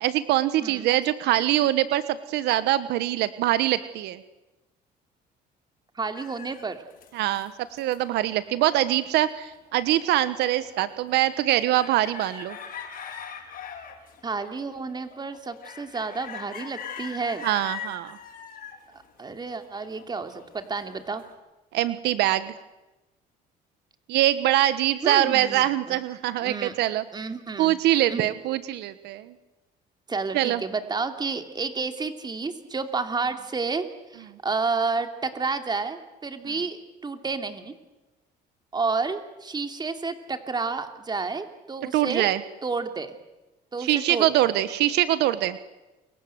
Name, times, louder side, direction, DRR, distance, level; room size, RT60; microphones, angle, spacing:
voice 1, 0.0-4.2 7.1-7.5 7.8-12.6 17.4-18.2 21.7-22.5 24.1-27.0 27.6-29.3 30.3-30.6 36.5-36.6 41.9-42.4 43.8-45.6, right 14 dB, 85° right, 14 dB, 1.3 m, -23 dB
voice 2, 5.9-6.8 14.2-17.5 19.2-21.2 25.0-26.0 26.4-26.7 27.1-27.7 28.1-28.3 30.1-37.7 38.7-42.3 42.6-43.1 43.7-44.5, right 4 dB, 25° right, 7 dB, 2.9 m, -30 dB
sound 1, 6.1-9.3 9.7-21.3, left 7 dB, 60° left, 6.0 m, -42 dB
29.0 x 23.5 x 8.0 m, 1.1 s
cardioid pair, 110°, 17 cm